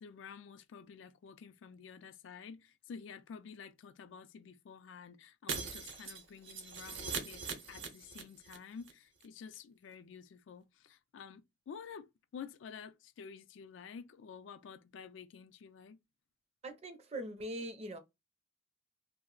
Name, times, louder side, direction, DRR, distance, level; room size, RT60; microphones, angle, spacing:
voice 1, 0.0-16.0, left 6 dB, 70° left, 0.3 m, -50 dB
Shatter, 5.5-8.6 8.8-8.9 9.2-9.3, right 5 dB, 80° right, 0.7 m, -41 dB
voice 2, 16.6-18.0, right 1 dB, 35° right, 0.5 m, -42 dB
2.3 x 2.0 x 3.7 m
head